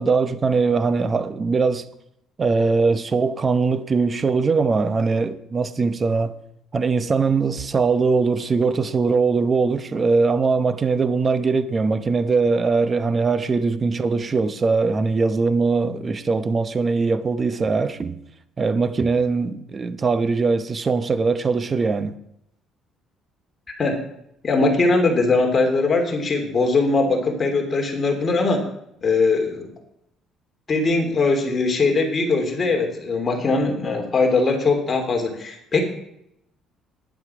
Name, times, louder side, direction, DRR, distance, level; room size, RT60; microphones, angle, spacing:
voice 1, 0.0-1.9 2.4-6.3 6.7-18.2 18.6-22.2, right 4 dB, 30° right, 0.8 m, -21 dB
voice 2, 23.7-24.0 24.4-28.6 29.0-29.7 30.7-35.8, left 3 dB, 30° left, 3.1 m, -21 dB
11.5 x 10.5 x 5.9 m
cardioid pair, 100°, 0 cm